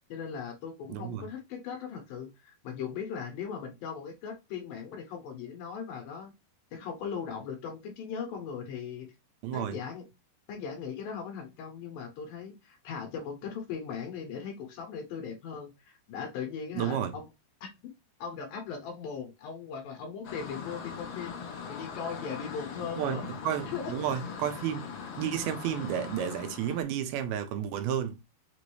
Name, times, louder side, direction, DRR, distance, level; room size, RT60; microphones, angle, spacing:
voice 1, 0.1-6.3 6.7-9.1 9.5-10.1 10.5-17.3 17.6-17.7 18.2-21.4 21.7-23.3 23.7-23.9, left 6 dB, 70° left, 2.4 m, -39 dB
voice 2, 0.9-1.2 9.4-9.8 16.8-17.2 23.0-23.2 23.5-24.9 25.2-28.2, right 9 dB, 80° right, 2.3 m, -31 dB
sound 1, 20.2-26.8, left 6 dB, 90° left, 1.4 m, -41 dB
6.0 x 2.6 x 3.0 m
omnidirectional pair, 4.5 m